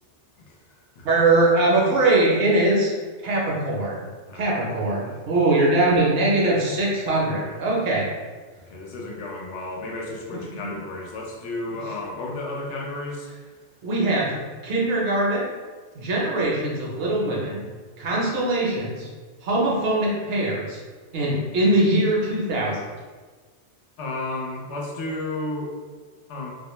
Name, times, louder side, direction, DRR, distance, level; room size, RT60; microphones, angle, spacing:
voice 1, 1.0-2.9 3.2-4.0 4.3-8.1 10.3-10.8 11.7-11.8 13.8-15.5 15.9-17.6 18.0-19.1 19.4-20.8 21.1-22.8, right 2 dB, 65° right, -3 dB, 0.8 m, -22 dB
voice 2, 4.3-4.7 8.7-13.3 24.0-25.7 26.3-26.5, left 2 dB, 80° left, -1 dB, 0.9 m, -32 dB
2.3 x 2.1 x 3.0 m, 1.4 s
omnidirectional pair, 1.2 m